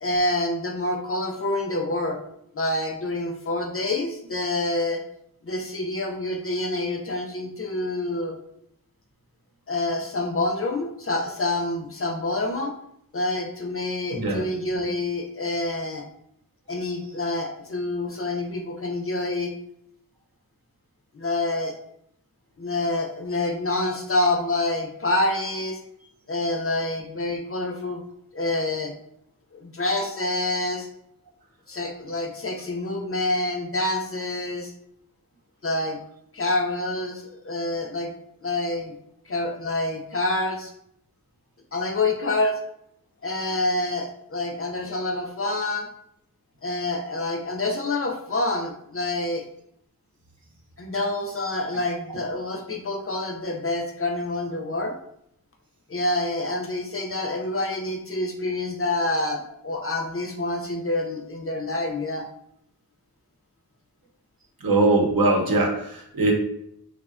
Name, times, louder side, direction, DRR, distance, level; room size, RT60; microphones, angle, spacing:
voice 1, 0.0-2.2 2.5-5.0 5.4-8.4 9.7-12.7 13.1-16.1 16.7-19.5 21.1-21.8 22.6-25.8 26.3-28.0 28.3-28.9 29.5-30.9 31.7-34.7 35.6-36.0 36.3-38.1 38.4-38.9 39.3-40.7 41.7-42.6 43.2-45.9 46.6-49.4 50.8-55.0 55.9-62.2, left 2 dB, 40° left, 1 dB, 0.4 m, -27 dB
voice 2, 14.1-14.4 64.6-66.3, right 2 dB, 70° right, 0 dB, 0.6 m, -21 dB
2.7 x 2.1 x 2.4 m, 0.74 s
wide cardioid pair, 40°, 37 cm